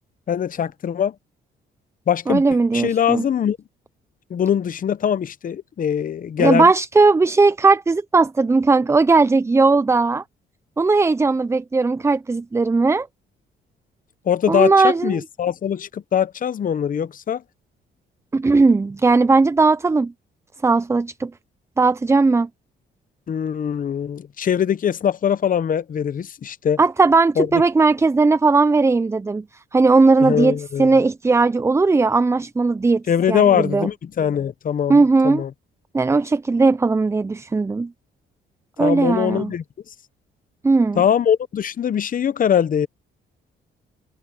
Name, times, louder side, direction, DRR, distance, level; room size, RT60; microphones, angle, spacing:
voice 1, 0.3-1.1 2.1-2.4 2.7-3.6 4.3-6.7 14.3-17.4 23.3-26.8 27.4-27.6 30.2-31.0 33.1-35.5 38.8-39.6 40.9-42.9, left 8 dB, 45° left, 0.8 m, -22 dB
voice 2, 2.3-3.2 6.4-10.2 10.8-13.1 14.5-15.1 18.3-20.1 20.6-21.3 21.8-22.5 26.8-29.4 29.7-33.9 34.9-35.4 35.9-37.9 38.8-39.5 40.6-41.0, right 3 dB, 15° right, 0.4 m, -17 dB
cardioid pair, 90°, 20 cm